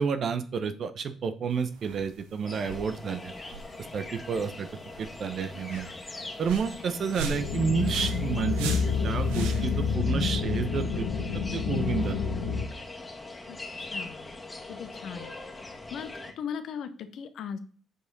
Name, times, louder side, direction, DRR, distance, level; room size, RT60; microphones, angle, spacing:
voice 1, 0.0-3.3 3.9-4.7 5.0-5.9 6.4-8.7 9.0-11.0 11.5-12.2, right 6 dB, 55° right, 10 dB, 0.8 m, -30 dB
sound 1, 1.5-9.9, right 5 dB, 80° right, 1.0 m, -41 dB
sound 2, 2.5-16.3, left 2 dB, 25° left, 1.8 m, -42 dB
sound 3, 7.3-12.7, left 5 dB, 80° left, 1.2 m, -28 dB
voice 2, 13.5-14.3 14.7-15.3 15.9-17.6, left 7 dB, 65° left, 11 dB, 0.9 m, -38 dB
8.1 x 4.9 x 4.0 m, 0.43 s
hypercardioid pair, 45°, 0 cm